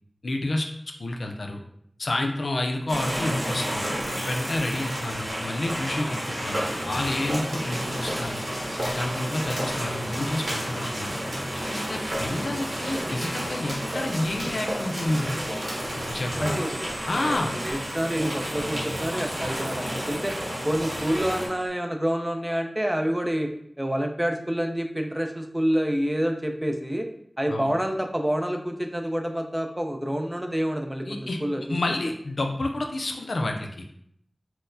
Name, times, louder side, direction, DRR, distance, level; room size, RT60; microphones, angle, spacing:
voice 1, 0.2-0.7 1.0-1.6 2.0-3.9 4.3-8.4 8.8-11.2 11.7-15.4 16.1-16.6 17.1-17.6 27.5-27.7 31.1-31.4 31.7-34.0, left 1 dB, 90° left, 3 dB, 0.4 m, -29 dB
sound 1, 2.9-21.5, equal, 85° right, 1.0 m, -31 dB
voice 2, 16.3-16.8 17.2-20.3 20.6-23.5 23.8-27.1 27.4-31.8, equal, 15° right, 4 dB, 0.4 m, -28 dB
sound 2, 16.3-21.7, right 1 dB, 65° right, 0.6 m, -47 dB
4.2 x 2.0 x 2.5 m, 0.69 s
wide cardioid pair, 60°, 0 cm